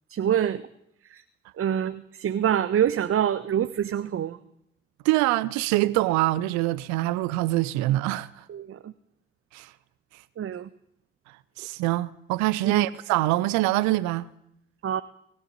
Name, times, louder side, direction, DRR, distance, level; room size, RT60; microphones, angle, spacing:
voice 1, 0.1-0.7 1.1-1.2 1.6-4.4 8.5-8.9 10.4-10.7 12.6-12.9 14.8-15.0, right 9 dB, 45° right, 1.1 m, -26 dB
voice 2, 5.0-8.3 9.5-9.7 11.6-14.3, right 17 dB, 65° right, 0.9 m, -24 dB
20.5 x 16.0 x 9.6 m
figure-of-eight pair, 40°, 30 cm